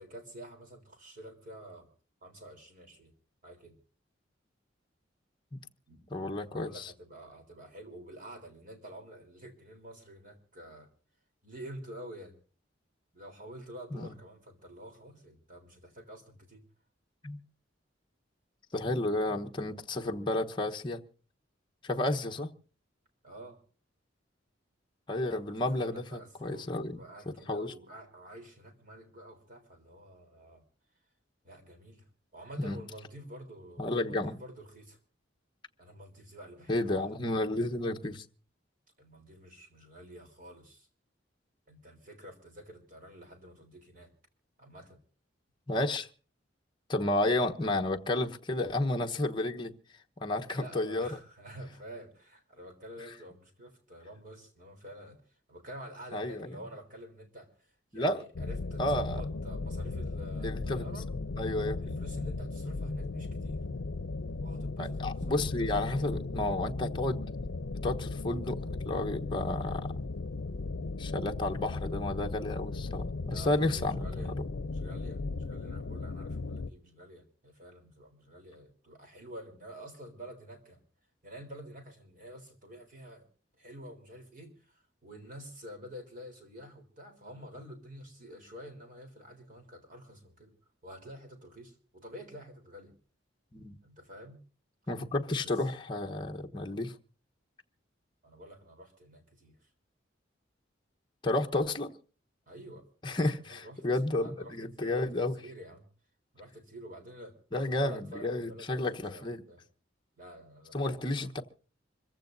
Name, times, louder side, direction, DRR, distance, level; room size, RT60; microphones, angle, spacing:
voice 1, 0.0-1.9 2.2-3.1 3.4-3.8 5.9-6.0 6.5-10.9 11.4-12.4 13.1-16.6 23.2-23.6 25.7-30.6 31.4-32.1 32.3-35.0 35.8-37.2 39.0-40.9 41.7-44.1 44.6-45.0 50.5-61.1 61.8-63.6 64.4-66.1 73.3-74.3 74.7-75.2 75.5-80.8 81.2-83.3 83.6-90.5 90.8-93.0 93.8-94.4 95.4-95.6 98.2-99.7 102.5-103.8 104.2-105.9 106.3-107.4 107.6-109.6 110.2-111.3, equal, 45° right, 3.9 m, -49 dB
voice 2, 6.1-6.9 13.9-14.2 17.2-17.4 18.7-21.0 21.8-22.5 25.1-27.7 32.6-32.8 33.8-34.4 36.7-38.2 45.7-46.1 46.9-49.8 50.2-51.2 56.1-56.5 57.9-58.2 58.8-59.2 60.4-60.9 61.4-62.0 64.8-67.2 67.8-69.9 71.0-74.4 93.5-93.7 94.9-97.0 101.2-101.9 103.0-105.3 107.5-109.4 110.7-111.4, left 2 dB, 25° left, 1.1 m, -32 dB
sound 1, 58.3-76.7, left 3 dB, 80° left, 0.6 m, -36 dB
26.0 x 15.5 x 2.7 m
head